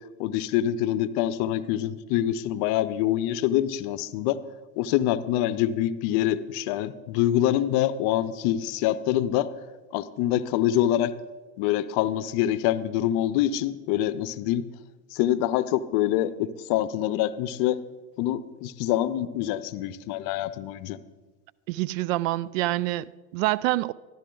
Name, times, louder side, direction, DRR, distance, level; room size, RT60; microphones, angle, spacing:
voice 1, 0.2-4.4 4.8-9.5 9.9-11.1 11.6-14.6 15.1-17.8 18.2-21.0, left 12 dB, 55° left, 0.7 m, -25 dB
voice 2, 21.7-23.9, right 18 dB, 65° right, 0.5 m, -26 dB
13.0 x 11.0 x 3.8 m
hypercardioid pair, 100°, 42 cm